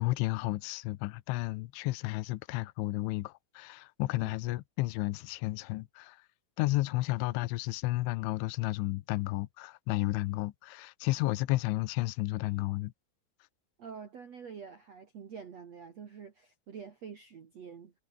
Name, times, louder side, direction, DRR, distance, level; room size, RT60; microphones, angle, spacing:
voice 1, 0.0-6.2 6.6-12.9, left 19 dB, 80° left, 3.2 m, -32 dB
voice 2, 13.8-17.9, right 6 dB, 45° right, 2.4 m, -47 dB
omnidirectional pair, 5.5 m